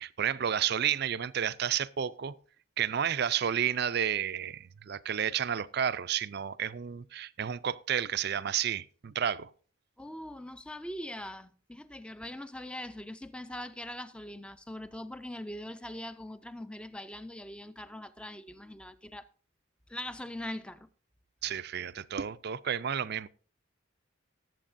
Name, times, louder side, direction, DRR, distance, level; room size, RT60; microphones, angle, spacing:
voice 1, 0.0-2.4 2.8-9.5 21.4-23.3, right 9 dB, 50° right, 0.4 m, -31 dB
voice 2, 10.0-19.3 19.9-20.9, left 1 dB, 5° left, 0.4 m, -42 dB
19.0 x 7.8 x 2.6 m
head